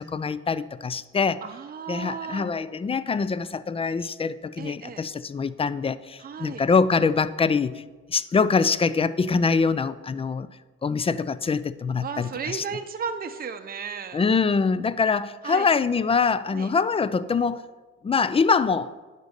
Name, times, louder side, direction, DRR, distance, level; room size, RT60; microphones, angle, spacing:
voice 1, 0.0-1.4 1.9-7.8 8.1-10.5 10.8-12.6 14.1-17.6 18.0-18.9, left 5 dB, 20° left, 0.3 m, -24 dB
voice 2, 1.4-2.5 4.6-5.0 6.2-6.6 12.0-14.2 15.4-15.7 16.5-16.7, right 6 dB, 30° right, 0.6 m, -34 dB
10.0 x 4.0 x 6.5 m
cardioid pair, 90°, 30 cm